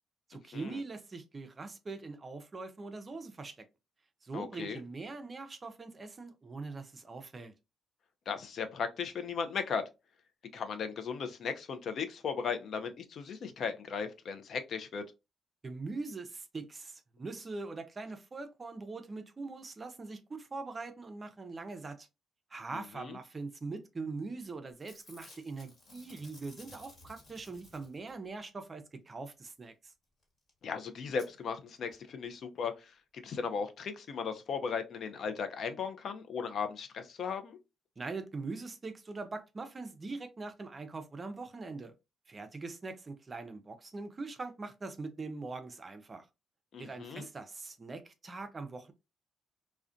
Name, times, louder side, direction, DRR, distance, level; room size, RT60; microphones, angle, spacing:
voice 1, 0.3-3.5 4.2-7.5 15.6-22.1 22.5-29.9 38.0-41.9 42.3-46.3 46.8-48.9, right 3 dB, 30° right, 0.4 m, -42 dB
voice 2, 4.3-4.8 8.3-9.8 10.5-15.0 22.7-23.2 30.6-37.6 46.7-47.3, left 6 dB, 60° left, 0.4 m, -37 dB
Packing tape duct tape / Tearing, 24.2-24.4 24.7-28.3 30.2-30.3 30.5-30.6 31.2-31.3 31.9-32.0 32.2-32.3, left 2 dB, 40° left, 1.4 m, -56 dB
2.4 x 2.1 x 2.5 m
cardioid pair, 90°, 0 cm